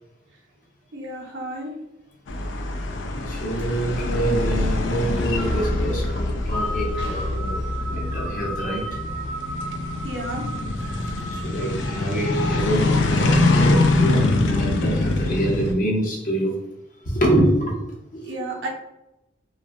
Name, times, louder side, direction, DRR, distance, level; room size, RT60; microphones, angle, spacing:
voice 1, 0.9-1.7 7.0-7.2 10.0-10.4 18.2-18.7, right 1 dB, 85° right, -1 dB, 0.6 m, -32 dB
sound 1, 2.3-15.7, left 2 dB, 85° left, 0.4 m, -24 dB
voice 2, 3.3-9.0 10.9-11.0 11.3-16.6 17.1-17.8 18.1-18.3, right 1 dB, 45° left, -3 dB, 0.7 m, -25 dB
sound 2, 4.3-12.7, right 1 dB, 5° right, 0.3 m, -35 dB
2.6 x 2.3 x 2.4 m, 0.91 s
head